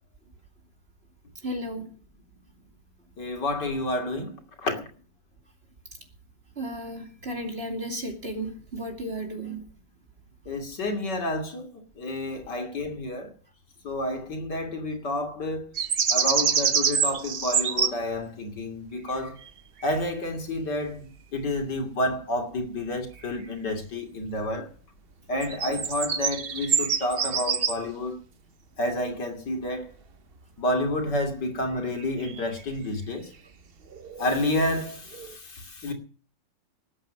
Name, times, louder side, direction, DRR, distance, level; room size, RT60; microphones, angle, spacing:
voice 1, 1.4-1.9 6.6-9.6 12.3-12.4, right 1 dB, 30° right, 2.8 m, -34 dB
voice 2, 3.2-4.8 10.4-13.3 13.8-15.7 16.1-19.4 19.8-24.7 25.3-28.2 28.8-29.9 30.6-33.3 34.2-35.9, left 1 dB, 60° left, 3.2 m, -30 dB
sound 1, 15.8-18.0 19.1-19.5 19.8-20.0 23.2-23.4 25.4-27.8 32.0-32.6 33.9-34.8 35.1-35.4, right 6 dB, 50° right, 0.7 m, -26 dB
19.5 x 8.7 x 6.3 m
omnidirectional pair, 2.1 m